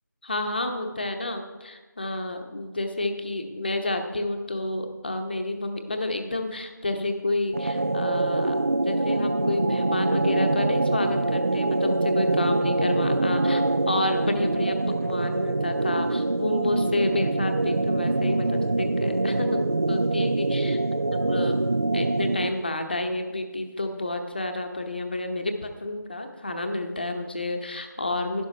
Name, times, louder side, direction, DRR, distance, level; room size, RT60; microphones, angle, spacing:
voice 1, 0.2-14.8 15.0-20.8 21.1-21.6 21.9-28.4, left 2 dB, 30° left, 5 dB, 0.9 m, -30 dB
sound 1, 7.5-22.7, right 2 dB, 40° right, 0.4 m, -24 dB
12.0 x 12.0 x 3.2 m, 1.2 s
figure-of-eight pair, 170°, 11 cm